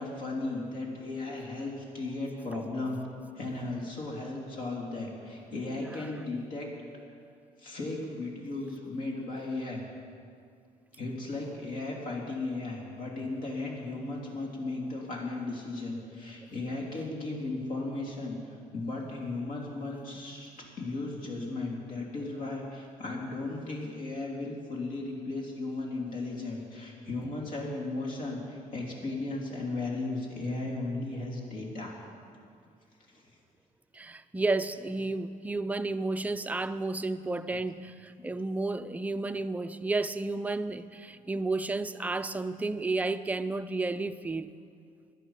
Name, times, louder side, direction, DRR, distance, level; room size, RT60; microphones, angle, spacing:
voice 1, 0.0-3.0 3.3-6.7 7.6-9.8 11.0-20.5 20.8-32.0 33.1-33.2, left 2 dB, 65° left, -2 dB, 3.3 m, -36 dB
voice 2, 33.9-44.5, right 3 dB, 10° right, 10 dB, 0.4 m, -32 dB
17.5 x 11.0 x 5.7 m, 2.3 s
cardioid pair, 140°, 15 cm